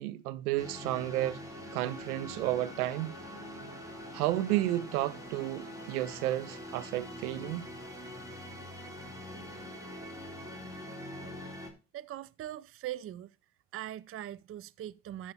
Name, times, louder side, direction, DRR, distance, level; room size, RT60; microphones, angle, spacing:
voice 1, 0.0-1.4 1.7-3.1 4.1-7.7, right 15 dB, 80° right, 0.9 m, -32 dB
sound 1, 0.6-11.7, equal, 5° right, 3.6 m, -44 dB
voice 2, 11.9-13.3 13.7-15.3, right 12 dB, 30° right, 0.5 m, -41 dB
12.0 x 7.0 x 4.1 m
hypercardioid pair, 70°, 44 cm